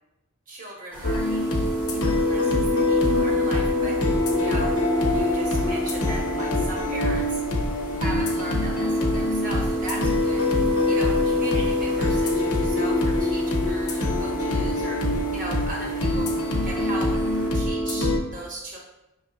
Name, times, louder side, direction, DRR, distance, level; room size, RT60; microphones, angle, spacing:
voice 1, 0.5-1.5 1.9-4.0 4.4-4.8 5.1-7.4 8.0-10.6 10.9-16.3 16.6-17.1 17.5-18.8, right 1 dB, 40° right, -2 dB, 1.1 m, -37 dB
sound 1, 0.9-17.5, equal, 5° right, 0.8 m, -41 dB
sound 2, 1.0-18.2, left 1 dB, 70° left, 0.8 m, -23 dB
5.7 x 3.2 x 2.7 m, 0.96 s
head